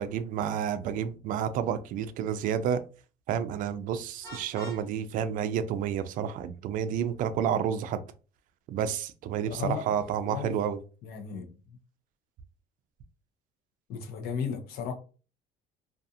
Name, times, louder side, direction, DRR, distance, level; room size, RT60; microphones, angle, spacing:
voice 1, 0.0-2.8 3.3-8.0 8.7-10.8, right 8 dB, 55° right, 0.4 m, -30 dB
Vehicle horn car horn honking, 4.2-4.9, left 2 dB, 20° left, 0.7 m, -45 dB
voice 2, 9.5-9.8 10.2-10.5 11.0-11.8 13.9-14.9, left 7 dB, 70° left, 0.7 m, -35 dB
2.4 x 2.4 x 2.7 m
cardioid pair, 130°, 16 cm